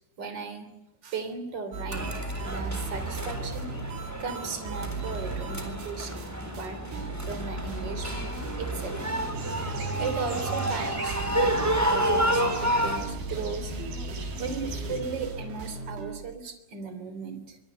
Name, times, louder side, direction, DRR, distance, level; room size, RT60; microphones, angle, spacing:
voice 1, 0.2-0.7 1.0-2.1 2.4-3.7 4.2-6.8 7.3-9.1 9.9-13.7 14.4-17.6, right 5 dB, 25° right, 9 dB, 3.1 m, -36 dB
sound 1, 1.7-6.3 6.5-6.7 6.9-16.2, right 3 dB, 75° right, 6.4 m, -37 dB
sound 2, 1.9-13.0, equal, 5° right, 2.8 m, -30 dB
sound 3, 9.3-15.0, right 3 dB, 50° right, 6.2 m, -38 dB
26.0 x 23.5 x 8.1 m, 0.83 s
omnidirectional pair, 5.6 m